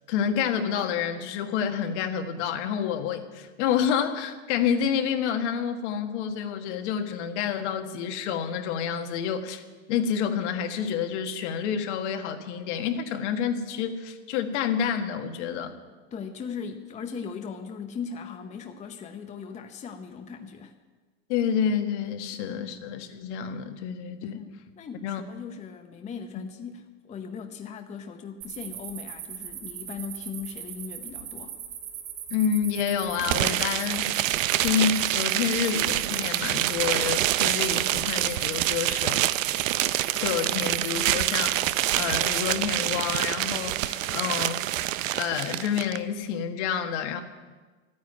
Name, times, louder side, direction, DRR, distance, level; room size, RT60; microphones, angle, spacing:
voice 1, 0.1-9.6 9.9-15.7 21.3-24.4 25.0-25.2 26.3-26.4 32.3-39.2 40.2-44.8 45.1-47.2, left 8 dB, 65° left, 6 dB, 1.7 m, -28 dB
voice 2, 16.1-20.7 22.6-22.8 24.4-31.6, left 6 dB, 20° left, 5 dB, 0.8 m, -39 dB
sound 1, 28.4-42.4, right 9 dB, 50° right, 2.3 m, -39 dB
sound 2, 33.2-46.0, right 14 dB, 85° right, 0.7 m, -26 dB
12.5 x 9.5 x 9.4 m, 1.3 s
supercardioid pair, 135°, 38 cm